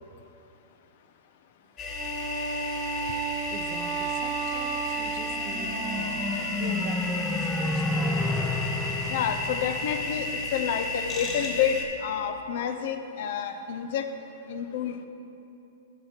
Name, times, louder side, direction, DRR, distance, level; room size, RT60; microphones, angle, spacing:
sound 1, 1.8-11.9, left 2 dB, 35° left, 1.5 m, -33 dB
Wind instrument woodwind instrument, 1.8-6.5, right 6 dB, 30° right, 1.3 m, -34 dB
voice 1, 3.5-8.1 8.3-8.5, right 6 dB, 45° right, 6 dB, 0.8 m, -43 dB
sound 2, 5.1-10.7, left 2 dB, 10° left, 0.6 m, -31 dB
voice 2, 9.1-14.1 14.5-15.1, left 8 dB, 60° left, 8 dB, 0.6 m, -29 dB
11.5 x 5.0 x 4.5 m, 2.7 s
hypercardioid pair, 115°, 0 cm